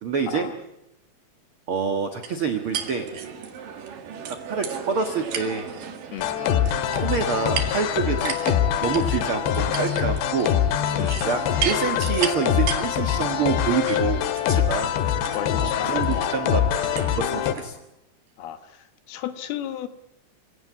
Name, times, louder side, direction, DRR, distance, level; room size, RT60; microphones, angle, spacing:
voice 1, 0.0-0.5 1.7-3.1 4.3-5.7 7.0-10.5 11.2-14.9 15.6-16.7 17.1-17.8, right 6 dB, 80° right, 6 dB, 1.2 m, -27 dB
sound 1, 2.2-17.7, right 7 dB, 60° right, 3.4 m, -35 dB
sound 2, 6.2-17.5, left 10 dB, 90° left, 3.5 m, -24 dB
voice 2, 15.3-16.4 18.4-19.9, left 10 dB, 70° left, 10 dB, 2.9 m, -34 dB
27.0 x 17.0 x 9.7 m, 0.88 s
omnidirectional pair, 4.9 m